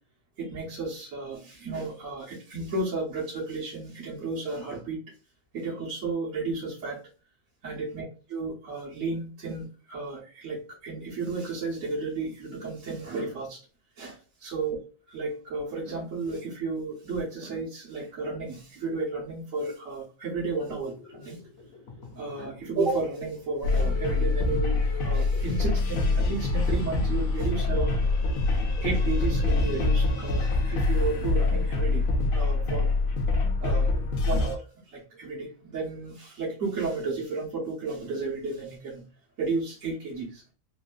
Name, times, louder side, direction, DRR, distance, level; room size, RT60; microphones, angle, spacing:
voice 1, 0.4-5.0 5.5-7.0 7.6-13.6 14.0-14.8 15.1-21.4 22.1-28.0 28.8-32.0 32.3-32.9 33.6-33.9 34.2-34.6 34.9-39.0 39.4-40.4, right 3 dB, 70° right, -7 dB, 1.5 m, -33 dB
sound 1, 20.7-31.2, left 2 dB, 55° left, 1.1 m, -48 dB
sound 2, 23.6-34.6, left 3 dB, 85° left, 1.1 m, -25 dB
3.5 x 2.6 x 2.3 m, 0.36 s
omnidirectional pair, 1.4 m